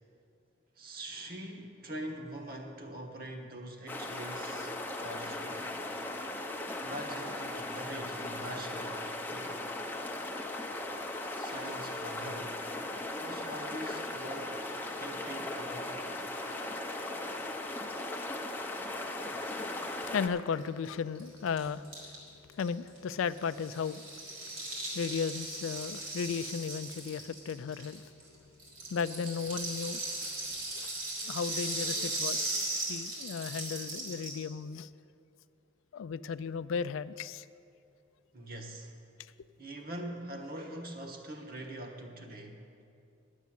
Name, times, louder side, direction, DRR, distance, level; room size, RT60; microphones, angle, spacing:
voice 1, 0.7-5.8 6.8-9.6 11.3-12.6 13.2-14.6 15.0-16.2 38.3-38.9 39.6-42.7, right 1 dB, 45° right, 3 dB, 1.2 m, -43 dB
sound 1, 3.9-20.3, left 2 dB, 10° left, 0.6 m, -38 dB
voice 2, 20.1-22.2 22.5-24.0 24.9-28.0 28.9-30.0 30.8-30.9 31.2-34.9 35.9-37.4, left 6 dB, 75° left, 14 dB, 0.3 m, -35 dB
Rattle (instrument), 20.6-20.7 20.8-20.9 21.1-28.3 28.6-34.5, right 2 dB, 80° right, 3.5 m, -37 dB
10.5 x 8.2 x 7.5 m, 2.4 s
head